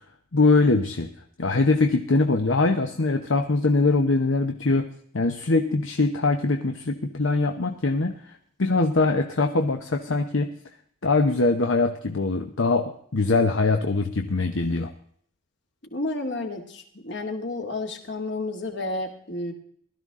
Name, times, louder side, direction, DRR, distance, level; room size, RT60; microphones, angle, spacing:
voice 1, 0.3-1.1 1.4-4.9 5.1-8.3 8.6-10.5 11.0-14.9, left 3 dB, 75° left, 6 dB, 0.9 m, -22 dB
voice 2, 15.9-19.5, left 2 dB, 60° left, 3 dB, 2.4 m, -31 dB
16.5 x 13.0 x 3.7 m, 0.63 s
head